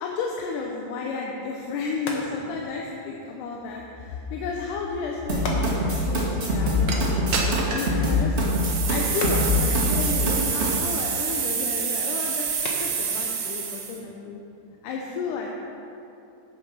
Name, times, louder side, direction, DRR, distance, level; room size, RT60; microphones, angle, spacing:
voice 1, 0.0-8.4 8.8-12.5 12.8-14.4 14.8-15.5, left 4 dB, 80° left, 0 dB, 2.3 m, -32 dB
sound 1, 1.5-15.0, left 2 dB, 55° left, 1.5 m, -41 dB
sound 2, 5.3-10.7, left 1 dB, 55° right, 0.7 m, -24 dB
sound 3, 6.9-7.0 7.3-7.9 8.4-14.0, right 6 dB, 75° right, 1.1 m, -27 dB
8.0 x 7.8 x 5.9 m, 2.9 s
omnidirectional pair, 3.7 m